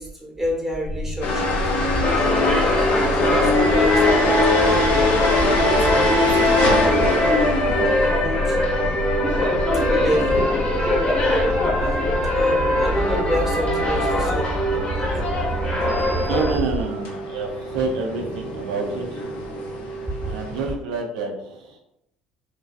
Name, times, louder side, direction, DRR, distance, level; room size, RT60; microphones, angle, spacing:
voice 1, 0.0-4.9 5.4-7.3 7.8-8.6 9.9-10.4 12.4-15.2 20.2-20.3, equal, 10° right, -2 dB, 0.9 m, -29 dB
sound 1, 0.8-16.8, equal, 50° right, 0.7 m, -29 dB
sound 2, 1.2-20.7, left 2 dB, 75° left, 0.7 m, -25 dB
sound 3, 2.0-16.5, left 1 dB, 30° left, 0.9 m, -22 dB
voice 2, 16.2-19.3 19.7-19.9 20.3-21.8, right 3 dB, 85° right, 0 dB, 0.5 m, -28 dB
2.6 x 2.2 x 2.4 m, 0.82 s
hypercardioid pair, 70°, 4 cm